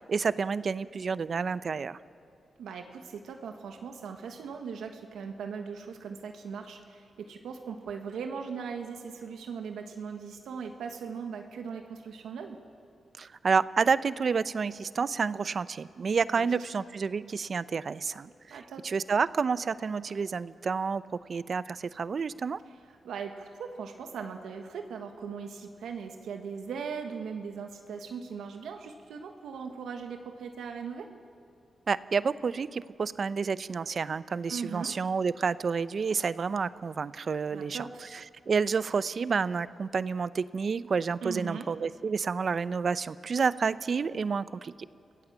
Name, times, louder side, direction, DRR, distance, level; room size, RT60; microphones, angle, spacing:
voice 1, 0.0-2.0 13.2-21.0 21.3-22.6 31.9-37.9 38.5-44.7, right 5 dB, 55° right, 16 dB, 0.6 m, -29 dB
voice 2, 2.6-12.6 16.3-16.7 18.5-18.8 22.7-31.1 34.5-34.9 37.5-38.0 41.2-41.7, right 6 dB, 90° right, 4 dB, 1.4 m, -39 dB
27.5 x 17.0 x 7.4 m, 2.4 s
cardioid pair, 70°, 0 cm